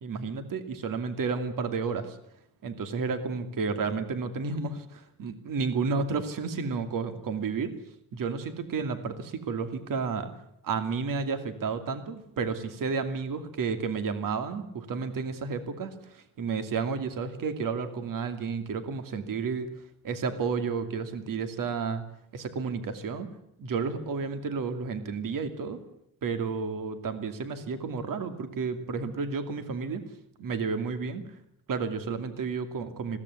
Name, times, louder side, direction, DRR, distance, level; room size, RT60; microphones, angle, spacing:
voice 1, 0.0-2.2 2.6-7.8 8.1-10.3 10.6-19.7 20.0-22.0 22.3-23.3 23.6-25.8 26.2-30.0 30.4-31.2 31.7-33.2, right 5 dB, 60° right, 8 dB, 2.6 m, -31 dB
21.0 x 17.0 x 9.7 m, 0.77 s
cardioid pair, 150°, 37 cm